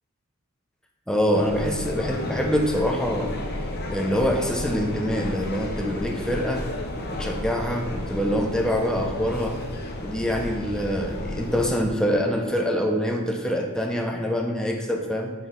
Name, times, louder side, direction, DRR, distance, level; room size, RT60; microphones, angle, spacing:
voice 1, 1.1-3.4 3.9-6.6 7.0-9.6 10.0-15.3, equal, 5° left, 1 dB, 0.7 m, -25 dB
sound 1, 1.3-11.8, left 1 dB, 50° left, 0.8 m, -32 dB
6.2 x 4.6 x 5.3 m, 1.5 s
head